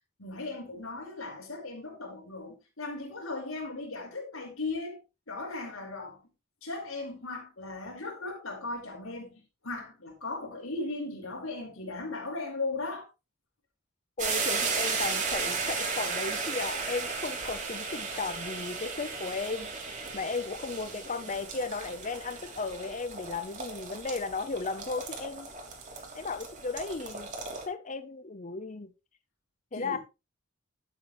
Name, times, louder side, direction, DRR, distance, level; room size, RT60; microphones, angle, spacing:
voice 1, 0.2-5.0 5.3-6.2 6.6-13.1 29.7-30.0, left 3 dB, 70° left, 4.7 m, -37 dB
voice 2, 14.2-19.7 20.1-25.5 26.1-27.3 27.7-28.9 29.7-30.0, left 4 dB, 35° left, 0.7 m, -35 dB
sound 1, 14.2-27.7, right 4 dB, 35° right, 3.1 m, -35 dB
12.5 x 8.4 x 3.1 m
head